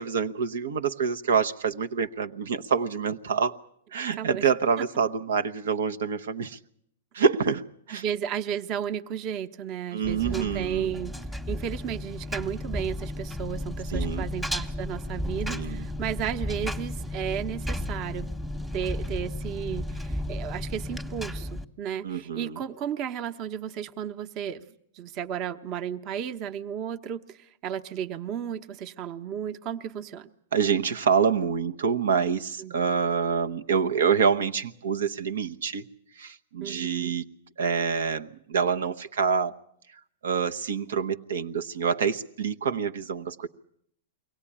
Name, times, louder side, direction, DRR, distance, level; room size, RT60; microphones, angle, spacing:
voice 1, 0.0-3.5 3.9-6.6 7.1-8.0 9.9-10.9 13.9-14.3 15.5-15.8 22.0-22.6 30.5-35.8 36.2-37.2 37.6-39.6 40.2-43.5, right 6 dB, 80° right, 8 dB, 0.9 m, -26 dB
voice 2, 4.2-4.5 4.8-4.9 7.9-11.1 11.5-18.3 18.7-30.3 32.6-33.0 36.6-37.2, right 9 dB, 35° right, 9 dB, 1.0 m, -34 dB
Engine, 10.0-21.6, left 1 dB, 5° right, 1.1 m, -33 dB
23.5 x 17.0 x 10.0 m, 0.71 s
hypercardioid pair, 135°, 0 cm